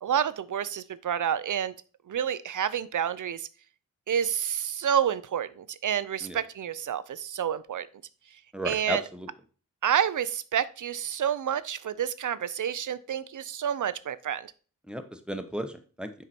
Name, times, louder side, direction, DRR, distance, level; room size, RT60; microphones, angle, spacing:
voice 1, 0.0-1.7 2.1-3.5 4.1-7.9 8.6-9.0 9.8-14.5, right 9 dB, 65° right, 16 dB, 0.6 m, -29 dB
voice 2, 8.5-9.3 14.9-16.1, right 1 dB, 5° right, 7 dB, 1.0 m, -34 dB
6.8 x 4.9 x 4.3 m, 0.39 s
wide cardioid pair, 65°, 33 cm